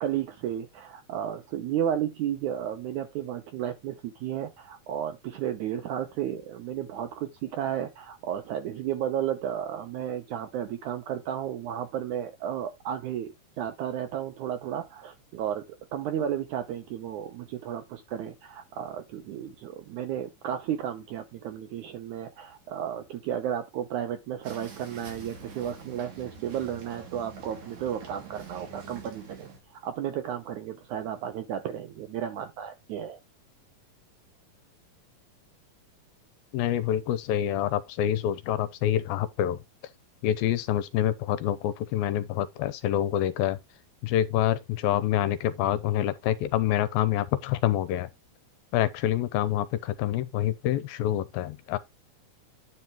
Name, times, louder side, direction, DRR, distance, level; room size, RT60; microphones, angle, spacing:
voice 1, 0.0-15.6 15.9-33.2, right 10 dB, 75° right, 1.8 m, -33 dB
sound 1, 24.4-29.6, right 4 dB, 55° right, 3.9 m, -45 dB
voice 2, 36.5-39.6 40.2-43.6 44.0-48.1 48.7-51.8, left 12 dB, 85° left, 2.5 m, -27 dB
9.8 x 4.2 x 4.4 m
omnidirectional pair, 4.3 m